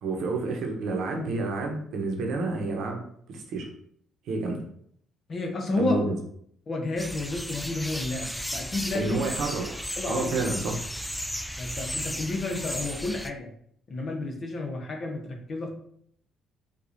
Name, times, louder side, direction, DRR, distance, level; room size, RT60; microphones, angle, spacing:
voice 1, 0.0-3.0 3.3-3.7 4.3-4.6 5.8-6.2 8.9-9.7 10.1-10.7, right 3 dB, 70° right, 2 dB, 0.8 m, -29 dB
voice 2, 5.3-6.0 6.7-9.2 10.0-10.3 11.6-13.5 13.9-15.7, left 2 dB, 50° left, 2 dB, 0.9 m, -31 dB
sound 1, 7.0-13.3, equal, 5° left, 0.3 m, -35 dB
4.7 x 2.4 x 2.6 m, 0.66 s
supercardioid pair, 70°, 0 cm